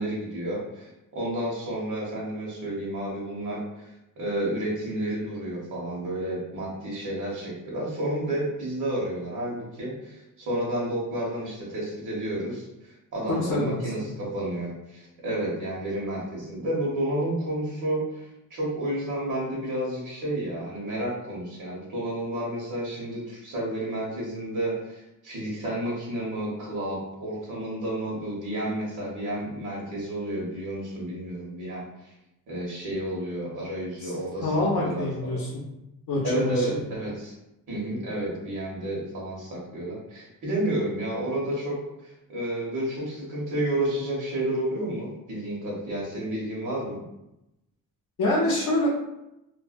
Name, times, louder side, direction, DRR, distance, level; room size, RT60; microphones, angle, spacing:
voice 1, 0.0-32.1 32.5-35.4 36.2-37.3 37.7-47.0, right 1 dB, 55° right, -5 dB, 1.1 m, -31 dB
voice 2, 13.3-14.1 34.0-34.1 34.4-35.6 36.1-36.8 48.2-48.9, left 2 dB, 60° left, -5 dB, 0.6 m, -26 dB
2.5 x 2.1 x 2.5 m, 0.88 s
cardioid pair, 120°, 36 cm